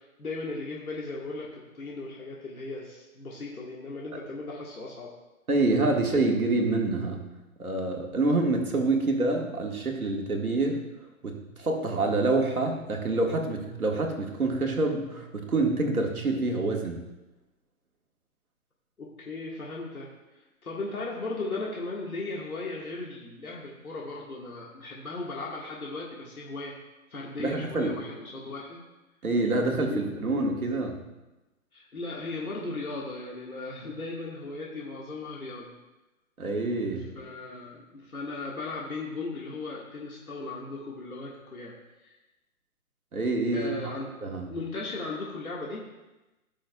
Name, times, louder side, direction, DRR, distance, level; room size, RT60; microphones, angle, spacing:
voice 1, 0.0-5.1 19.0-20.1 20.6-26.8 27.1-28.8 29.9-30.3 31.7-35.7 37.2-41.8 42.0-42.2 43.5-44.1 44.5-45.9, left 3 dB, 90° left, -4 dB, 1.9 m, -37 dB
voice 2, 5.5-7.2 7.6-10.8 11.2-17.0 27.4-28.0 29.2-31.0 36.4-37.0 43.1-43.8 44.2-44.5, right 2 dB, 85° right, 1 dB, 1.7 m, -26 dB
16.0 x 6.3 x 2.3 m, 1.0 s
figure-of-eight pair, 135°, 42 cm